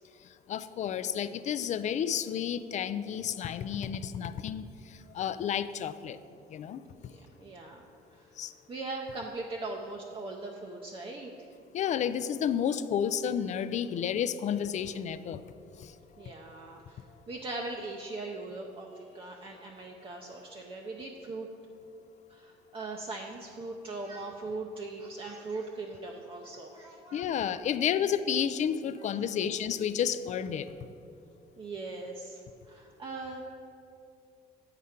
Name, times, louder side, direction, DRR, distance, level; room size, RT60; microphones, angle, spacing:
voice 1, 0.5-6.2 6.5-6.8 8.4-8.5 11.7-15.4 15.8-15.9 27.1-30.7, left 8 dB, 45° left, 13 dB, 0.4 m, -31 dB
voice 2, 7.1-7.8 8.1-8.3 8.7-11.3 16.2-21.5 22.3-27.6 29.0-29.7 31.6-33.4, right 3 dB, 30° right, 0 dB, 0.6 m, -40 dB
8.0 x 5.7 x 5.0 m, 2.6 s
cardioid pair, 110°, 17 cm